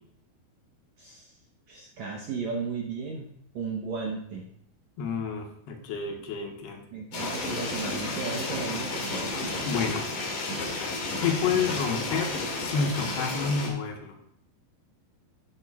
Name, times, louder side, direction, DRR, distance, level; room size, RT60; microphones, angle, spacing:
voice 1, 1.0-1.3 1.7-4.5 6.9-9.4, right 4 dB, 75° right, -1 dB, 1.7 m, -35 dB
voice 2, 5.0-6.8 9.7-10.0 11.2-14.2, left 5 dB, 85° left, 2 dB, 3.4 m, -29 dB
Toy Helicopter, 7.1-13.7, left 2 dB, 60° left, 3.5 m, -32 dB
11.5 x 11.0 x 2.4 m, 0.74 s
omnidirectional pair, 4.6 m